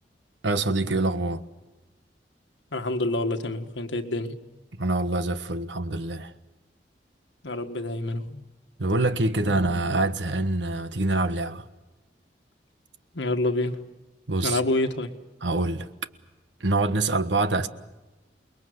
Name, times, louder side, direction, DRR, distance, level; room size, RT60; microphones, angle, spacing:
voice 1, 0.4-1.4 4.7-6.3 8.8-11.7 14.3-14.6 15.4-15.9 16.6-17.7, right 2 dB, 85° right, 1.4 m, -25 dB
voice 2, 2.7-4.4 7.4-8.4 13.1-13.8 14.4-15.1, left 2 dB, 85° left, 1.7 m, -27 dB
28.5 x 21.5 x 8.0 m
head